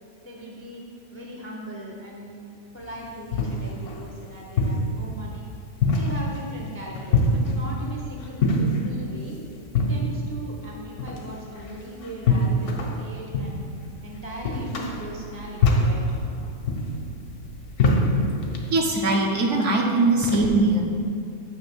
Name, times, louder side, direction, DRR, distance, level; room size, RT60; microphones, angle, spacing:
voice 1, 0.2-0.8 1.1-2.5 2.7-5.4 5.9-9.4 9.7-13.7 14.0-16.2 20.2-20.4, right 1 dB, 20° left, -2 dB, 0.4 m, -38 dB
sound 1, 2.8-18.7, left 2 dB, 80° left, 1.4 m, -26 dB
voice 2, 18.7-20.8, right 2 dB, 60° right, 0 dB, 1.0 m, -21 dB
7.9 x 3.1 x 6.1 m, 2.4 s
omnidirectional pair, 1.6 m